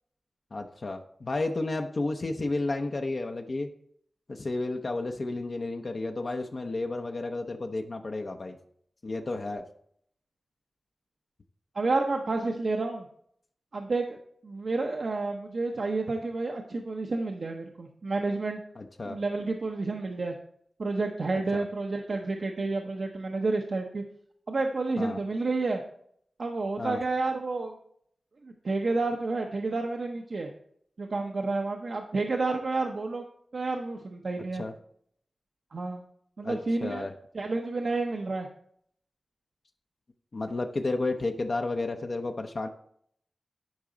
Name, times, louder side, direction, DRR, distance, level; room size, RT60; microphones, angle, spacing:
voice 1, 0.5-3.7 4.3-8.6 9.0-9.6 18.8-19.2 21.5-21.6 25.0-25.2 26.8-27.0 34.5-34.7 36.4-37.1 40.3-42.7, left 2 dB, 65° left, 3 dB, 0.7 m, -32 dB
voice 2, 11.7-13.1 13.7-14.2 14.4-18.6 19.0-20.3 20.8-24.0 24.5-25.8 26.4-27.8 28.4-30.5 31.0-33.2 33.5-34.6 35.7-36.0 36.4-37.1 37.3-38.5, right 3 dB, 75° right, 2 dB, 0.7 m, -30 dB
10.5 x 4.8 x 3.8 m, 0.66 s
cardioid pair, 40°, 0 cm